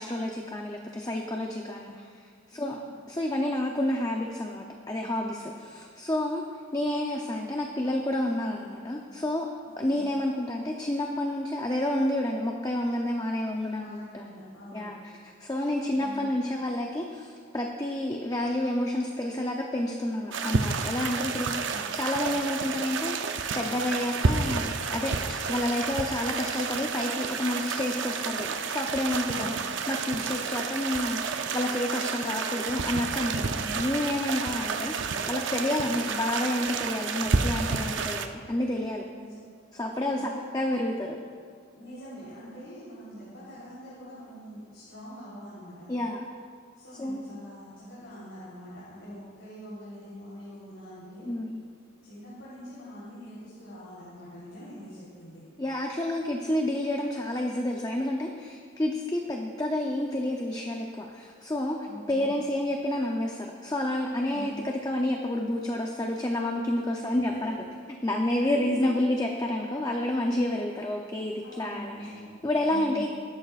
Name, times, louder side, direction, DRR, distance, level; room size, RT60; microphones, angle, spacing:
voice 1, 0.0-1.9 2.5-2.8 3.1-6.4 6.7-9.5 9.8-14.3 14.7-15.0 15.4-23.3 23.5-25.1 25.5-29.5 29.9-34.9 35.3-39.0 39.7-40.2 40.5-41.2 45.9-46.3 47.0-47.3 51.3-51.6 55.6-61.8 62.1-67.6 68.0-72.1 72.4-73.1, left 1 dB, 15° left, 1 dB, 0.6 m, -29 dB
voice 2, 9.6-10.1 13.8-14.9 15.9-16.4 21.1-21.9 29.2-29.6 33.5-33.7 39.1-39.4 40.0-40.4 41.7-45.9 46.8-51.3 52.0-55.4 61.8-62.3 64.2-64.7 67.0-67.6 68.2-68.8 71.4-72.3 72.6-73.1, equal, 65° left, -10 dB, 3.8 m, -44 dB
sound 1, 20.3-38.3, right 5 dB, 60° right, 0.6 m, -30 dB
20.5 x 11.5 x 2.5 m, 2.1 s
head